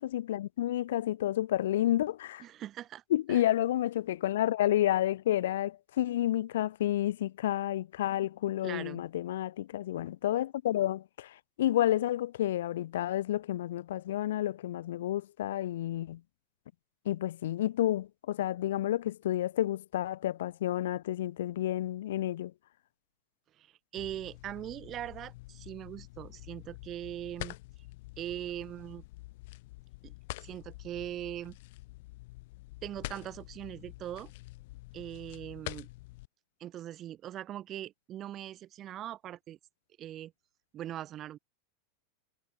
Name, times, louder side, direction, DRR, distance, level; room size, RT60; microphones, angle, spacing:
voice 1, 0.0-2.4 3.1-16.2 17.0-22.5, left 13 dB, 90° left, 1.3 m, -30 dB
voice 2, 2.4-3.0 3.3-3.4 8.6-9.0 23.6-27.6 28.2-29.1 30.0-30.1 30.4-31.6 32.8-34.3 34.9-35.9 36.6-39.6 40.0-40.3 40.7-41.4, right 12 dB, 25° right, 1.1 m, -41 dB
sound 1, 24.0-36.3, left 20 dB, 50° left, 7.9 m, -47 dB
supercardioid pair, 175°, 0 cm